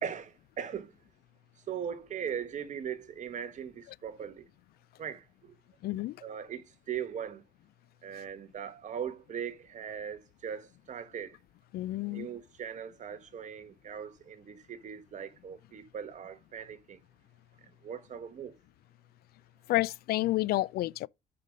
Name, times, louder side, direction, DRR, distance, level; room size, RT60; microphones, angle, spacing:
voice 1, 0.0-0.9 1.7-4.5 5.0-5.5 6.2-7.4 8.0-11.4 12.0-17.0 17.6-18.5, right 8 dB, 45° right, 1.4 m, -39 dB
voice 2, 5.8-6.2 11.7-12.3 19.7-21.1, left 17 dB, 65° left, 0.4 m, -29 dB
6.7 x 5.5 x 6.2 m
cardioid pair, 110°, 17 cm